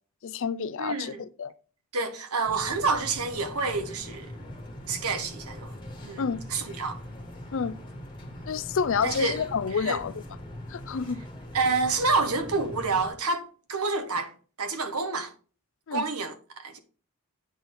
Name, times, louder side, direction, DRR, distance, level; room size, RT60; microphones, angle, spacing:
voice 1, 0.2-1.5 6.2-6.4 7.5-7.8 8.5-10.1 10.7-11.2 15.9-16.0, left 6 dB, 60° left, 0.4 m, -29 dB
voice 2, 0.8-1.2 1.9-4.5 4.9-5.8 6.0-7.0 9.0-9.4 9.7-10.0 11.5-14.3 14.6-15.3 15.9-16.8, right 4 dB, 80° right, 1.3 m, -28 dB
sound 1, 2.4-13.1, left 1 dB, 20° left, 1.8 m, -41 dB
8.6 x 4.1 x 4.7 m
head